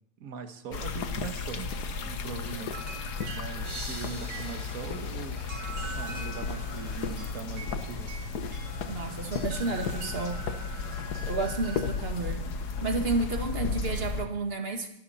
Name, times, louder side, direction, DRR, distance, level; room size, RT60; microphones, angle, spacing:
voice 1, 0.2-1.7 2.0-2.8 3.3-5.4 5.9-8.1, right 6 dB, 45° right, 7 dB, 1.2 m, -40 dB
sound 1, 0.7-14.2, left 4 dB, 80° left, 0.8 m, -34 dB
sound 2, 2.6-11.9, right 3 dB, 70° right, 3.7 m, -44 dB
sound 3, 3.6-6.4, right 1 dB, 10° right, 1.8 m, -45 dB
voice 2, 8.9-10.4 11.3-12.5 12.8-14.9, right 3 dB, 25° right, 4 dB, 1.6 m, -31 dB
24.0 x 12.5 x 4.3 m, 0.74 s
omnidirectional pair, 3.4 m